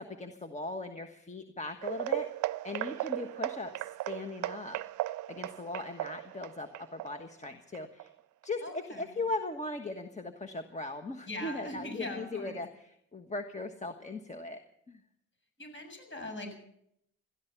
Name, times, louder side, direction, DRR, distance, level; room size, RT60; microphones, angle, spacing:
voice 1, 0.0-2.3 2.6-8.1 8.4-14.6 14.9-15.0, left 2 dB, 25° left, 7 dB, 1.2 m, -39 dB
sound 1, 1.8-8.5 8.7-9.0 9.4-9.5 10.0-10.1, right 16 dB, 80° right, 0.5 m, -37 dB
voice 2, 8.6-9.2 11.3-12.6 15.6-16.5, left 2 dB, 40° left, 5 dB, 7.0 m, -41 dB
17.0 x 13.5 x 5.8 m, 0.73 s
cardioid pair, 90°, 30 cm